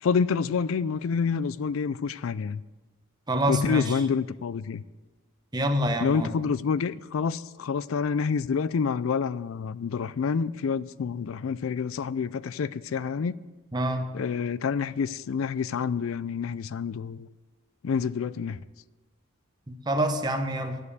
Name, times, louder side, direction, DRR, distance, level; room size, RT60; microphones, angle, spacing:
voice 1, 0.0-2.6 3.5-4.8 6.0-13.4 14.1-17.3 17.8-18.6, left 6 dB, 75° left, 0.4 m, -28 dB
voice 2, 3.3-3.9 5.5-6.3 13.7-14.1 19.7-20.8, equal, 20° right, 1.0 m, -26 dB
10.5 x 7.6 x 8.1 m
head